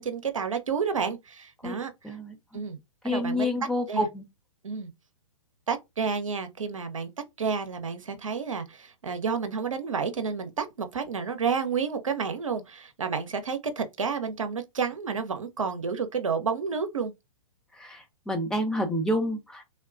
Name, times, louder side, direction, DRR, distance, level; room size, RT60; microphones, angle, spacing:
voice 1, 0.0-1.9 2.5-2.8 3.0-3.5 3.9-4.1 4.6-4.9 5.7-7.1 7.4-17.1, right 5 dB, 85° right, 0.7 m, -30 dB
voice 2, 2.0-2.6 3.0-4.2 17.8-19.7, left 1 dB, 5° left, 0.6 m, -29 dB
3.3 x 2.2 x 2.4 m
hypercardioid pair, 120°, 17 cm